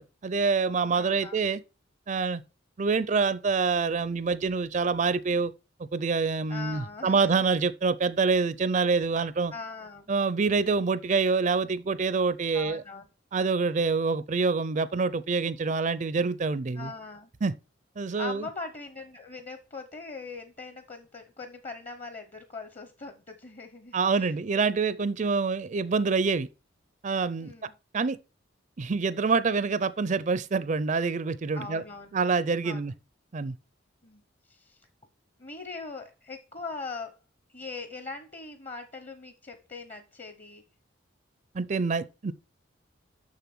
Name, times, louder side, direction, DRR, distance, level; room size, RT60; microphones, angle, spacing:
voice 1, 0.0-1.6 2.1-2.4 2.8-5.5 5.8-9.5 10.1-12.8 13.3-16.9 17.4-17.5 18.0-18.5 23.9-26.5 27.0-27.5 27.9-28.2 28.8-31.8 32.1-32.9 33.3-33.5 41.5-42.3, right 4 dB, 40° right, 0.4 m, -26 dB
voice 2, 0.9-1.4 6.5-7.4 9.5-10.1 12.5-13.1 16.7-17.3 18.2-24.3 27.4-27.7 31.5-32.2 32.6-32.8 34.0-34.9 35.4-37.2 37.5-40.6, left 3 dB, 35° left, 0.9 m, -41 dB
6.8 x 6.5 x 6.1 m
head